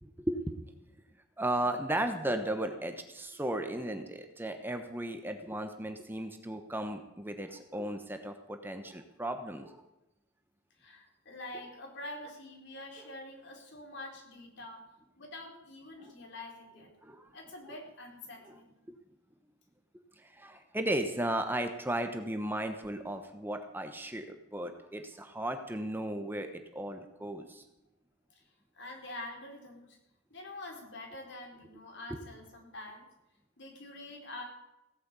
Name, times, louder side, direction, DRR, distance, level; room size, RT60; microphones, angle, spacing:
voice 1, 0.0-0.5 1.4-9.8 16.0-16.1 17.0-17.3 17.7-17.8 18.5-18.6 20.2-27.6, right 1 dB, 10° right, 6 dB, 1.0 m, -35 dB
voice 2, 10.8-14.9 15.2-16.9 17.3-18.8 28.4-28.5 28.7-30.0 30.3-33.1 33.6-34.4, left 2 dB, 60° left, 2 dB, 4.0 m, -46 dB
16.5 x 9.3 x 8.3 m, 0.93 s
head